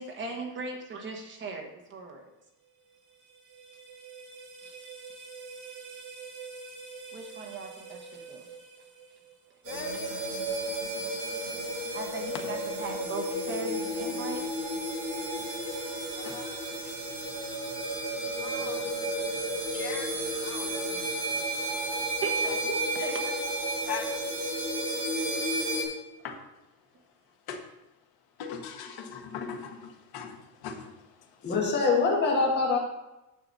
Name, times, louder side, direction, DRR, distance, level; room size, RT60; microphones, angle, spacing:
voice 1, 0.0-2.2 7.1-8.5 9.9-10.1 11.9-14.5 20.9-21.0 22.2-23.4, right 3 dB, 25° right, 2 dB, 1.3 m, -38 dB
sound 1, 2.6-9.7, right 5 dB, 70° right, 3.1 m, -46 dB
voice 2, 9.6-10.3 15.4-15.5 16.1-16.6 18.3-18.8 19.5-20.9 23.8-24.2 26.2-26.4 27.5-27.6 28.4-31.5, left 7 dB, 50° left, 3 dB, 1.5 m, -40 dB
sound 2, 9.6-25.8, right 1 dB, 50° right, 3.4 m, -32 dB
voice 3, 31.4-32.8, left 4 dB, 25° left, -3 dB, 1.7 m, -24 dB
9.8 x 6.7 x 4.1 m, 0.97 s
cardioid pair, 170°, 45 cm